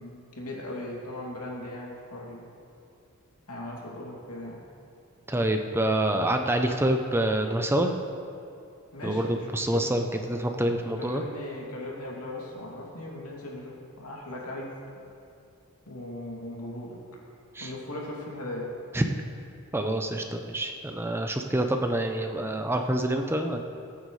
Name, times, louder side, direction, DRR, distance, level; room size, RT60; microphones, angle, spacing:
voice 1, 0.0-2.5 3.5-4.6 8.9-9.5 9.7-9.9 10.7-14.7 15.8-17.0 17.6-18.7, left 1 dB, 90° left, -3 dB, 2.8 m, -38 dB
voice 2, 5.3-7.9 9.0-11.2 17.6-17.7 18.9-19.0 19.7-23.6, right 1 dB, 10° right, 4 dB, 0.5 m, -27 dB
22.0 x 9.2 x 3.3 m, 2.5 s
head